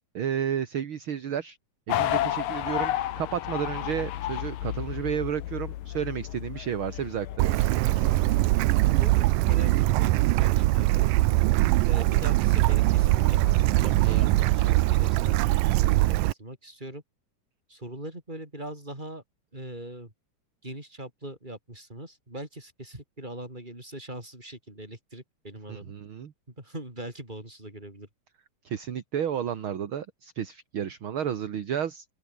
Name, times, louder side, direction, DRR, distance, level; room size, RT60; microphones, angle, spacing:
voice 1, 0.1-1.6 1.9-7.7 25.7-26.3 28.6-32.1, right 8 dB, 45° right, 2.0 m, -32 dB
sound 1, 1.9-7.4, left 13 dB, 90° left, 3.0 m, -31 dB
sound 2, 7.1-9.8 12.4-15.1, left 4 dB, 50° left, 5.8 m, -48 dB
Bird / Stream, 7.4-16.3, right 18 dB, 85° right, 2.4 m, -22 dB
voice 2, 9.5-11.1 11.9-15.4 15.7-16.1 16.4-17.0 17.7-19.2 19.5-20.1 20.6-25.9 26.6-28.1, right 1 dB, 15° right, 6.2 m, -41 dB
open air
omnidirectional pair, 3.8 m